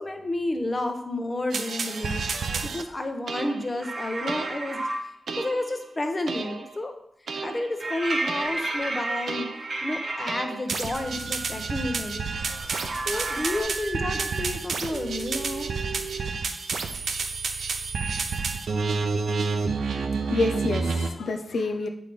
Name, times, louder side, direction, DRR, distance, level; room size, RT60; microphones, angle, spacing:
voice 1, 0.0-4.8 5.4-6.9 7.4-9.5 9.8-12.3 13.1-15.7, left 1 dB, 30° left, 5 dB, 1.0 m, -31 dB
sound 1, 1.5-2.8 3.3-3.8 4.3-4.7 5.3-5.7 6.3-6.7 7.3-7.8 8.3-8.7 9.3-9.7 10.3-21.1, right 4 dB, 85° right, 0.6 m, -30 dB
sound 2, 3.8-5.0 7.8-10.3 12.3-13.6, right 2 dB, 50° right, 1.1 m, -32 dB
voice 2, 20.0-21.9, left 2 dB, 80° left, 5 dB, 0.6 m, -28 dB
8.4 x 3.5 x 5.2 m, 0.76 s
cardioid pair, 75°, 0 cm